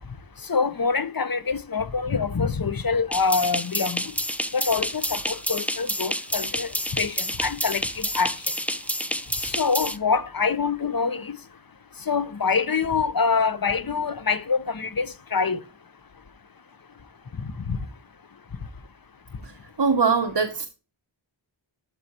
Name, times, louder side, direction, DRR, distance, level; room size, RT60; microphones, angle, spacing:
voice 1, 0.5-4.0 4.5-8.3 9.4-11.3 12.1-15.6 17.7-17.8, left 5 dB, 45° left, 0.8 m, -25 dB
sound 1, 3.1-10.0, equal, 5° left, 0.5 m, -29 dB
voice 2, 19.4-20.7, right 5 dB, 55° right, 0.9 m, -23 dB
13.0 x 4.7 x 3.0 m
wide cardioid pair, 50°, 48 cm